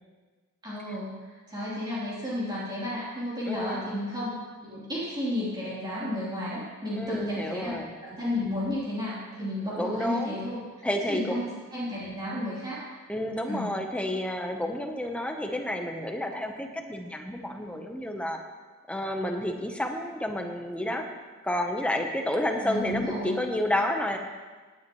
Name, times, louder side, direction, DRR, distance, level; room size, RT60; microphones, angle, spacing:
voice 1, 0.6-1.2 1.5-4.4 4.6-7.8 8.0-10.6 11.1-12.8 13.4-13.7 22.6-23.4, left 1 dB, 20° right, -10 dB, 3.5 m, -32 dB
voice 2, 3.5-4.0 6.9-7.9 9.8-10.4 10.8-11.5 13.1-18.4 18.9-21.0 21.4-24.2, left 1 dB, 5° left, 3 dB, 1.0 m, -30 dB
18.0 x 10.5 x 3.1 m, 1.4 s
head